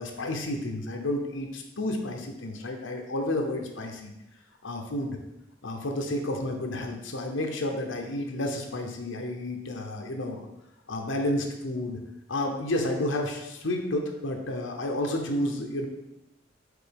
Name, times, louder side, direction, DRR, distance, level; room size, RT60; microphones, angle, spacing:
voice 1, 0.0-4.1 4.6-5.2 5.6-10.5 10.9-12.0 12.3-15.9, left 1 dB, 85° left, 2 dB, 0.8 m, -31 dB
5.1 x 4.0 x 5.2 m, 0.88 s
head